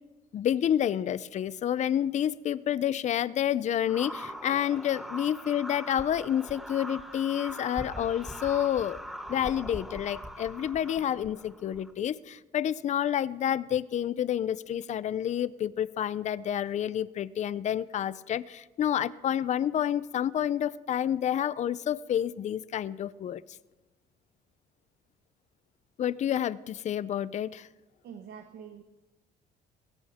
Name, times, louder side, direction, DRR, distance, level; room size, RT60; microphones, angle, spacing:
voice 1, 0.3-9.0 9.3-23.4 26.0-27.7, left 10 dB, 45° left, 18 dB, 0.5 m, -29 dB
sound 1, 3.9-11.9, equal, ahead, 1.0 m, -41 dB
voice 2, 28.0-28.8, right 7 dB, 70° right, 6 dB, 1.3 m, -45 dB
19.5 x 17.0 x 3.6 m, 1.1 s
cardioid pair, 110°, 17 cm